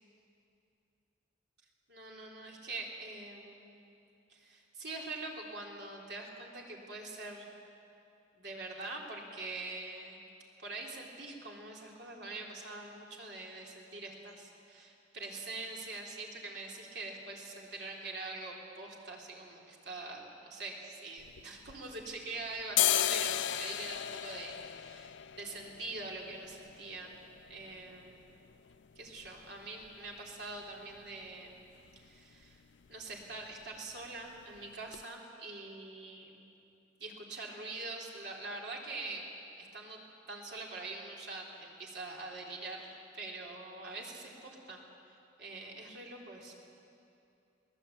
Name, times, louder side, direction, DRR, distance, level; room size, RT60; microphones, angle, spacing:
voice 1, 1.9-3.8 4.3-7.5 8.4-10.2 10.6-27.1 27.5-28.2 29.0-31.6 32.0-32.6 32.9-36.4 37.0-39.2 39.6-40.0 40.3-44.8 45.4-46.7, right 2 dB, 65° right, -2 dB, 3.8 m, -44 dB
sound 1, 21.2-22.2 22.6-30.3 30.6-30.7 31.0-31.5 31.8-32.1 32.3-32.6 32.8-33.6 33.9-34.1 34.5-34.6 34.9-35.0, left 12 dB, 90° left, 0.5 m, -36 dB
23.0 x 18.5 x 8.7 m, 2.7 s
head